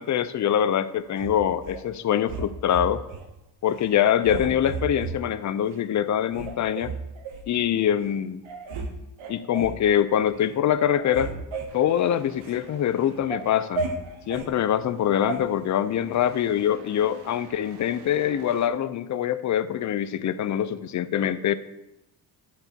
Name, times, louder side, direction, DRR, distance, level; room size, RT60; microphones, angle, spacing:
voice 1, 0.0-3.0 3.6-6.9 7.5-8.4 9.3-11.3 11.7-13.9 14.3-21.6, left 10 dB, 40° left, 14 dB, 0.5 m, -24 dB
sound 1, 1.2-1.8 2.3-3.3 3.7-3.9 4.2-5.2 5.7-5.8 6.3-7.5 8.1-8.2 8.4-8.9 9.2-9.8 10.3-10.5 10.8-12.6 13.0-14.5 15.3-15.4, right 4 dB, 75° right, 1.1 m, -34 dB
sound 2, 11.7-18.7, right 5 dB, 55° right, 0.9 m, -49 dB
9.6 x 3.9 x 4.4 m, 0.90 s
cardioid pair, 75°, 48 cm